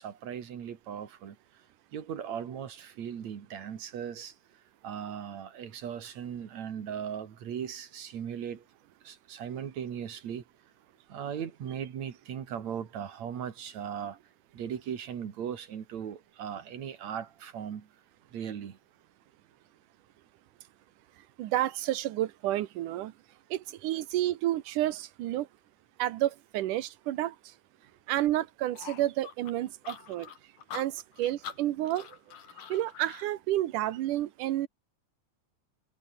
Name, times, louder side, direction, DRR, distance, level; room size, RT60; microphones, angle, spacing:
voice 1, 0.0-1.4 1.9-4.3 4.8-8.6 9.0-10.4 11.1-14.2 14.5-17.9 18.3-18.8, right 8 dB, 65° right, 3.3 m, -38 dB
voice 2, 21.4-23.1 23.5-25.5 26.0-27.4 28.1-30.3 30.7-32.1 32.7-34.7, right 14 dB, 85° right, 2.6 m, -30 dB
sound 1, 28.8-33.3, left 8 dB, 90° left, 4.0 m, -45 dB
omnidirectional pair, 3.5 m